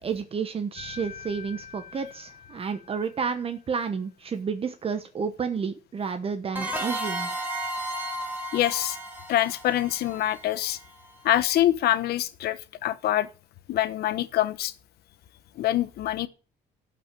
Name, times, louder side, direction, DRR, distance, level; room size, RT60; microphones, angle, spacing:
voice 1, 0.0-7.3, right 6 dB, 35° right, 1.1 m, -31 dB
sound 1, 0.8-3.6, left 6 dB, 50° left, 1.6 m, -45 dB
sound 2, 6.5-11.1, right 1 dB, 10° right, 3.0 m, -33 dB
voice 2, 8.5-9.0 9.3-10.8 11.2-13.3 13.7-14.7 15.6-16.3, left 13 dB, 70° left, 1.1 m, -25 dB
12.0 x 6.0 x 7.5 m
cardioid pair, 110°, 17 cm